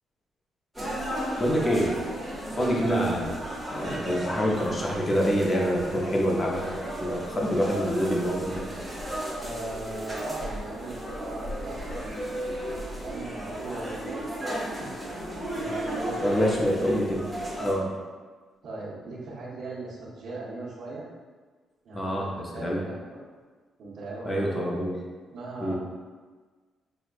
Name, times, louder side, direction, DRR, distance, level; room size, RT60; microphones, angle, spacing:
sound 1, 0.7-17.7, equal, ahead, 1.0 m, -35 dB
voice 1, 1.4-2.0 2.6-6.7 7.0-8.6 16.2-17.3 17.6-18.0 21.9-22.8 24.2-25.0 25.6-25.8, equal, 20° left, -2 dB, 0.6 m, -26 dB
voice 2, 2.5-2.8 9.4-12.4 13.0-15.2 15.5-16.4 17.5-17.6 18.6-21.1 21.8-23.2 23.8-24.6 25.3-25.8, right 2 dB, 60° right, -11 dB, 0.9 m, -38 dB
6.0 x 2.3 x 2.4 m, 1.4 s
cardioid pair, 155°, 0 cm